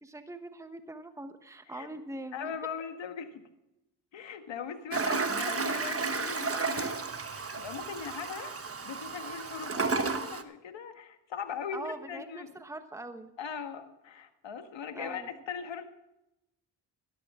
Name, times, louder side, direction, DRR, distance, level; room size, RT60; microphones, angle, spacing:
voice 1, 0.0-2.5 11.7-13.3 14.9-15.4, right 2 dB, 5° right, 8 dB, 1.2 m, -42 dB
voice 2, 2.3-3.4 4.1-7.0 7.3-8.5 8.8-12.5 13.4-15.8, left 7 dB, 75° left, 7 dB, 1.8 m, -39 dB
Toilet flush, 4.9-10.4, right 4 dB, 30° right, 1.3 m, -32 dB
16.5 x 13.0 x 3.8 m, 0.89 s
cardioid pair, 70°, 45 cm